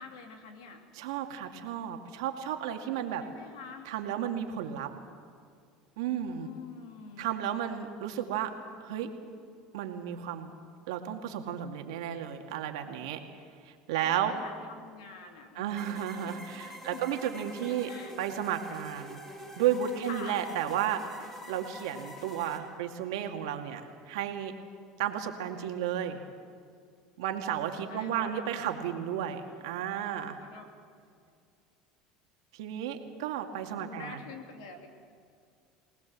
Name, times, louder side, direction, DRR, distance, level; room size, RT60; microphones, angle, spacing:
voice 1, 0.0-0.9 3.2-3.9 6.4-7.5 14.0-17.2 17.6-18.2 20.0-20.4 27.9-28.4 29.2-29.5 30.4-30.7 30.9-31.0 33.8-34.9, left 5 dB, 85° left, 4 dB, 3.3 m, -47 dB
voice 2, 0.9-3.2 3.9-4.9 6.0-6.5 7.2-8.5 8.8-9.1 9.7-10.5 10.9-13.2 13.6-14.3 15.6-17.9 18.2-19.2 19.6-21.0 21.5-24.5 25.0-26.2 27.2-30.4 32.5-34.2, right 10 dB, 80° right, 4 dB, 2.2 m, -33 dB
sound 1, 15.8-22.6, left 1 dB, 15° left, 6.2 m, -46 dB
24.0 x 19.0 x 7.5 m, 2.3 s
supercardioid pair, 95°, 3 cm